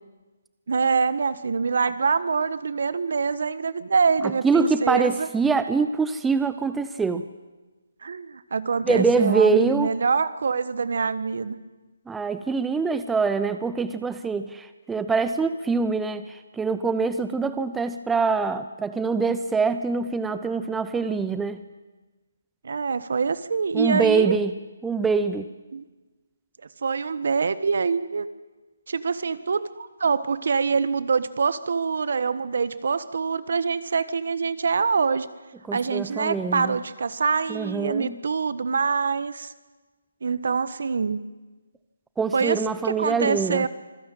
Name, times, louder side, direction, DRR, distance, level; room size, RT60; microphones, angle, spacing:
voice 1, 0.7-5.3 8.0-11.6 22.6-24.4 25.7-25.8 26.8-28.3 28.9-35.3 35.7-39.5 40.2-41.2 42.3-42.6 42.8-43.7, right 5 dB, 60° right, 15 dB, 1.3 m, -25 dB
voice 2, 4.4-7.3 8.8-9.9 12.1-21.6 23.7-24.5 24.8-25.5 35.7-36.8 37.5-38.2 42.2-43.7, right 4 dB, 5° right, 11 dB, 0.7 m, -24 dB
25.5 x 15.0 x 9.1 m, 1.2 s
hypercardioid pair, 160°, 0 cm